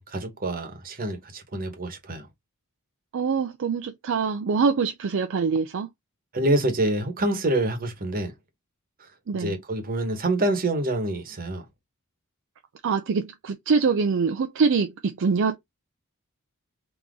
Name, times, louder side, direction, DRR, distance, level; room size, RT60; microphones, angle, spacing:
voice 1, 0.0-2.3 6.3-8.3 9.0-11.6, right 1 dB, 40° right, 1.2 m, -27 dB
voice 2, 3.1-5.9 9.3-9.5 12.8-15.6, right 5 dB, 60° right, 0.4 m, -24 dB
3.8 x 2.9 x 3.5 m
head